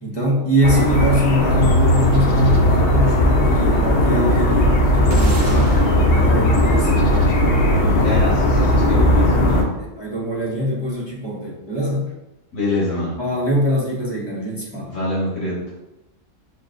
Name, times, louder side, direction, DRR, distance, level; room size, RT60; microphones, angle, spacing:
voice 1, 0.0-5.7 6.1-7.1 7.8-8.2 9.8-12.1 13.2-14.9, equal, 25° left, -4 dB, 0.8 m, -23 dB
sound 1, 0.6-9.6, left 1 dB, 60° left, 0.7 m, -16 dB
sound 2, 5.1-9.6, right 3 dB, 80° right, 1.0 m, -30 dB
voice 2, 8.0-9.7 12.5-13.2 14.8-15.6, left 1 dB, 80° left, -6 dB, 1.5 m, -25 dB
6.1 x 2.3 x 2.5 m, 0.94 s
omnidirectional pair, 1.4 m